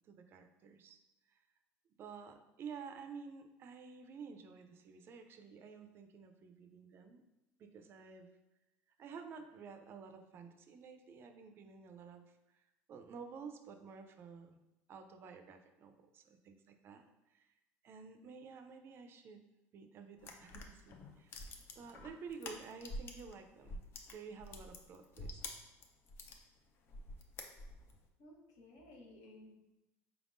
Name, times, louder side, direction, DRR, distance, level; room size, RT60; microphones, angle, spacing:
voice 1, 0.1-1.0 1.3-1.4 2.0-7.2 7.6-8.3 9.0-12.6 12.9-14.6 14.9-17.0 17.3-17.5 17.8-19.4 19.7-21.4 21.8-23.8 24.1-25.6, right 5 dB, 45° right, 7 dB, 0.4 m, -51 dB
sound 1, 20.2-23.3 23.6-26.4 26.9-28.0, left 2 dB, 45° left, 0.5 m, -47 dB
voice 2, 28.2-29.5, left 1 dB, 75° left, -1 dB, 1.0 m, -57 dB
4.5 x 3.5 x 2.5 m, 0.97 s
cardioid pair, 120°, 6 cm